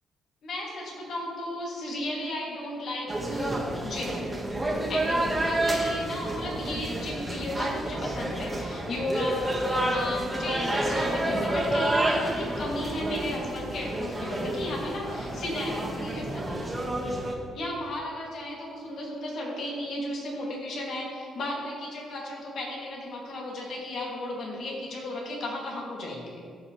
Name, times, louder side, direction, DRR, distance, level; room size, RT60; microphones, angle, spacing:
voice 1, 0.4-4.2 4.9-16.8 17.5-26.4, left 1 dB, 65° left, -3 dB, 2.5 m, -35 dB
sound 1, 3.1-17.3, right 1 dB, 15° right, 1.6 m, -29 dB
14.0 x 6.3 x 3.3 m, 2.2 s
cardioid pair, 90°, 0 cm